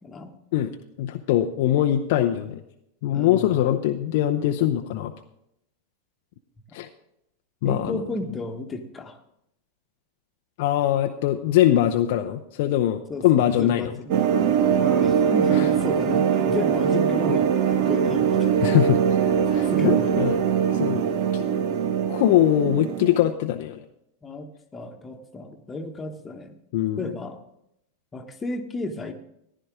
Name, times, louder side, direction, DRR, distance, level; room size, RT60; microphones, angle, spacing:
voice 1, 0.0-0.4 3.1-3.5 7.6-9.2 13.1-14.2 14.5-18.7 19.5-20.1 24.2-26.6 27.0-27.4 28.1-29.1, left 2 dB, 15° left, 5 dB, 1.3 m, -33 dB
voice 2, 1.0-2.6 3.0-5.1 6.7-6.9 7.6-8.0 10.6-14.0 15.5-15.7 18.6-19.0 19.5-20.4 20.7-21.1 21.3-21.4 22.1-23.8 26.7-27.1, left 12 dB, 50° left, 5 dB, 0.7 m, -22 dB
sound 1, 14.1-23.3, right 8 dB, 45° right, 0.9 m, -22 dB
14.5 x 11.5 x 3.7 m, 0.78 s
figure-of-eight pair, 90°, 0 cm